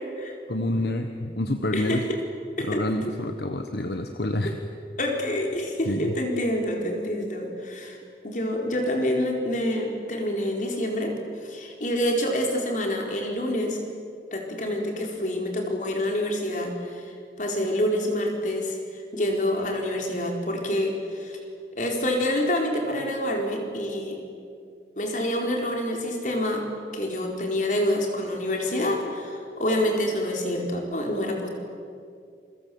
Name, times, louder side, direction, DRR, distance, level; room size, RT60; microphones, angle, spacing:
voice 1, 0.5-2.0 2.6-4.6 5.9-6.1, left 1 dB, 65° left, 6 dB, 1.4 m, -28 dB
voice 2, 5.0-8.0 8.2-11.1 11.4-13.8 14.3-17.1 17.4-21.4 21.8-24.2 25.0-26.7 26.9-31.5, left 1 dB, 45° left, 2 dB, 4.6 m, -27 dB
28.0 x 24.0 x 7.9 m, 2.3 s
head